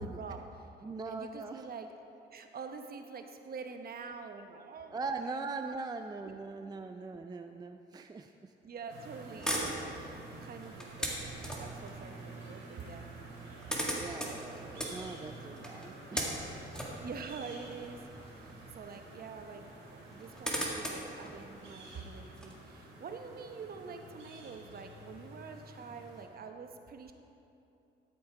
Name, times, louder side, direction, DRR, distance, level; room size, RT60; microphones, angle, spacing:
voice 1, 0.0-0.7 1.1-2.0 2.3-5.4 5.7-5.8 6.6-6.7 8.6-13.1 16.9-18.0 18.3-19.6 19.9-27.1, right 5 dB, 50° right, 6 dB, 0.9 m, -46 dB
voice 2, 0.8-1.6 4.9-8.3 13.9-16.8, right 3 dB, 20° right, 6 dB, 0.4 m, -41 dB
sound 1, 8.9-26.2, right 2 dB, 85° right, 2.7 m, -50 dB
sound 2, 9.4-11.9 13.0-13.1 13.3-18.7 19.1-19.2 20.0-22.5, equal, 5° left, 1.9 m, -38 dB
12.0 x 7.1 x 4.7 m, 2.8 s
cardioid pair, 90°, 20 cm